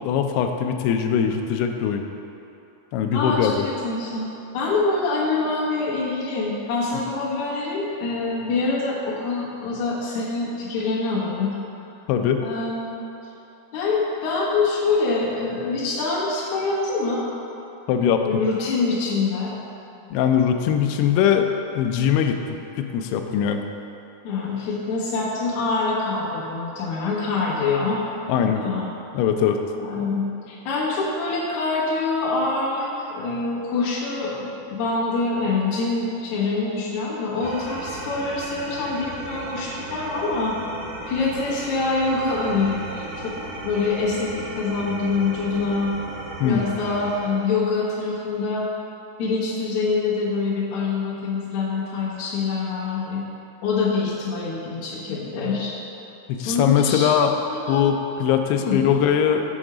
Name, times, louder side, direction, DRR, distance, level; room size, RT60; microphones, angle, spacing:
voice 1, 0.0-2.0 2.9-3.7 12.1-12.4 17.9-18.4 20.1-21.5 21.8-23.6 28.3-28.6 29.1-29.6 46.4-46.6 56.3-57.3 57.7-59.5, left 8 dB, 85° left, 5 dB, 2.4 m, -21 dB
voice 2, 3.1-11.5 12.4-12.9 13.7-17.3 18.2-19.6 24.2-28.0 28.5-28.9 29.8-40.6 41.1-43.3 43.6-45.9 46.4-48.7 49.2-53.2 53.6-55.7 56.5-57.1 57.5-57.8 58.6-58.8, left 3 dB, 60° left, -9 dB, 2.1 m, -25 dB
sound 1, 37.4-47.2, right 2 dB, 85° right, 3.3 m, -35 dB
7.0 x 4.4 x 4.9 m, 2.8 s
omnidirectional pair, 4.8 m